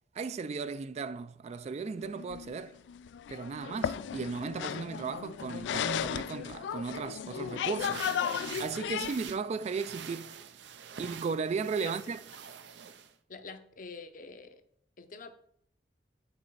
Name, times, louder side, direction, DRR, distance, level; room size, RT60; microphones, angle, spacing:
voice 1, 0.2-2.8 3.3-10.3 11.0-12.2, right 5 dB, 40° right, 0.3 m, -36 dB
sound 1, 2.0-9.3, left 8 dB, 90° left, 0.3 m, -35 dB
sound 2, 7.8-13.1, right 7 dB, 85° right, 0.5 m, -45 dB
voice 2, 13.3-14.6 15.0-15.3, left 4 dB, 50° left, 0.7 m, -45 dB
8.0 x 4.2 x 4.6 m
head